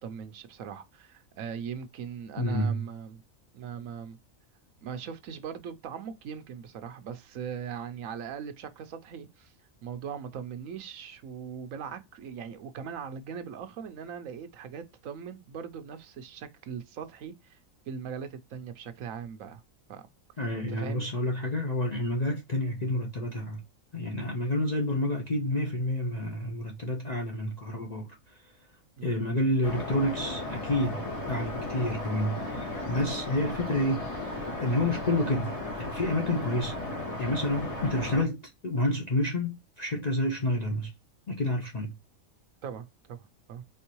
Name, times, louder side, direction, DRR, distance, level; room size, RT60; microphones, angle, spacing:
voice 1, 0.0-3.2 3.5-4.2 4.8-9.5 9.8-17.6 17.9-19.6 19.9-20.1 20.7-21.1 22.3-22.4 29.0-29.1 42.6-43.6, right 7 dB, 75° right, 1.1 m, -40 dB
voice 2, 2.4-2.8 20.4-23.6 23.9-28.4 29.0-36.8 37.2-40.9 41.3-42.0, left 1 dB, 40° left, 0.6 m, -29 dB
sound 1, 29.6-38.2, left 2 dB, 25° left, 1.7 m, -35 dB
4.5 x 3.5 x 3.0 m
omnidirectional pair, 1.4 m